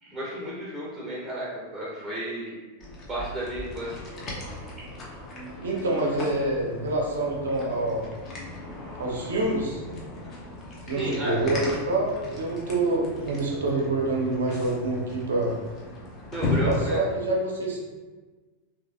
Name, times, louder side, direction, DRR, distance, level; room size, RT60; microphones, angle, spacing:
voice 1, 0.0-2.6 3.1-4.0 10.9-11.5 16.3-17.0, right 1 dB, 15° right, -6 dB, 0.8 m, -33 dB
sound 1, 2.8-17.0, left 2 dB, 30° left, 0.7 m, -36 dB
voice 2, 5.6-8.1 9.0-9.8 10.9-15.6 16.6-17.8, right 2 dB, 65° right, -3 dB, 0.8 m, -26 dB
3.1 x 3.0 x 2.5 m, 1.3 s
figure-of-eight pair, 90°, 0 cm